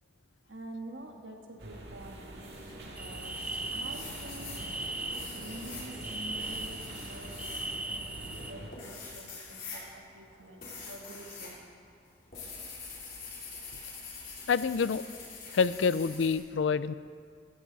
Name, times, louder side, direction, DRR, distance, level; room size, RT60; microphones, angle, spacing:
voice 1, 0.5-4.8 5.3-11.7, right 1 dB, 80° right, 2 dB, 1.6 m, -48 dB
sound 1, 1.6-8.7, right 1 dB, 60° right, 2.1 m, -46 dB
sound 2, 2.9-8.5, right 2 dB, 10° right, 0.6 m, -39 dB
sound 3, 3.1-3.5 3.9-11.6 11.8-16.3, left 4 dB, 45° left, 3.5 m, -45 dB
voice 2, 14.5-15.0 15.5-16.9, left 5 dB, 75° left, 16 dB, 0.4 m, -27 dB
15.5 x 15.0 x 4.0 m, 2.2 s
head